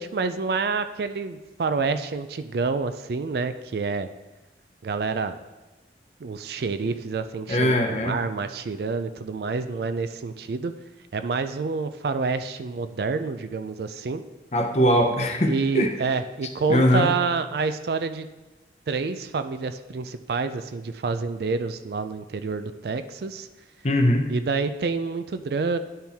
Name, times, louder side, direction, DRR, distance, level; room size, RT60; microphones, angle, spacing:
voice 1, 0.0-4.1 4.8-5.4 6.2-10.7 11.1-14.2 15.5-18.3 18.9-23.5 24.3-25.8, right 4 dB, 60° right, 11 dB, 0.4 m, -28 dB
voice 2, 7.5-8.2 14.5-15.9 16.7-17.1 23.8-24.3, equal, 40° left, 4 dB, 0.7 m, -21 dB
10.5 x 4.4 x 3.5 m, 1.1 s
head